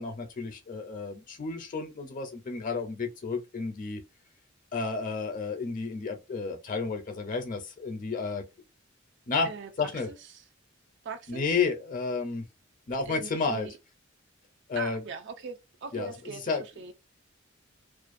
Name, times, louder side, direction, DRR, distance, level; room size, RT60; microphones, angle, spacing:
voice 1, 0.0-4.0 4.7-8.4 9.3-9.5 9.8-10.1 11.3-12.4 12.9-13.7 14.7-15.0 15.9-16.1 16.5-16.6, left 4 dB, 40° left, 0.5 m, -31 dB
voice 2, 9.4-10.4 11.0-11.5 13.1-13.8 14.8-16.9, right 5 dB, 60° right, 0.4 m, -41 dB
2.4 x 2.1 x 2.4 m
head